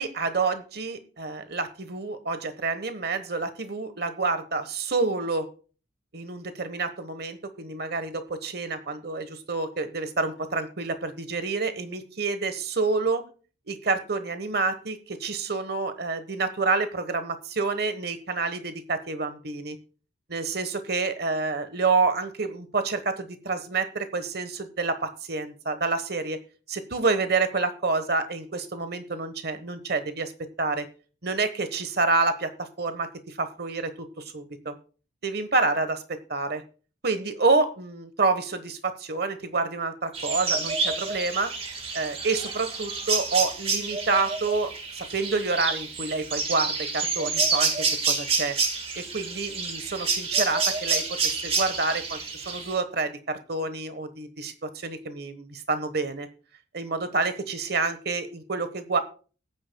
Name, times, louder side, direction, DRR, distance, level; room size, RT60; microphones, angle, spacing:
voice 1, 0.0-5.5 6.1-13.3 13.7-19.8 20.3-26.4 26.7-30.3 30.6-30.9 31.2-34.7 35.2-36.6 37.0-41.5 41.9-48.6 49.0-56.3 56.7-59.0, right 3 dB, 55° right, 10 dB, 1.2 m, -28 dB
sound 1, 40.1-52.7, right 4 dB, 30° right, 1.6 m, -28 dB
19.5 x 9.2 x 2.2 m, 0.38 s
head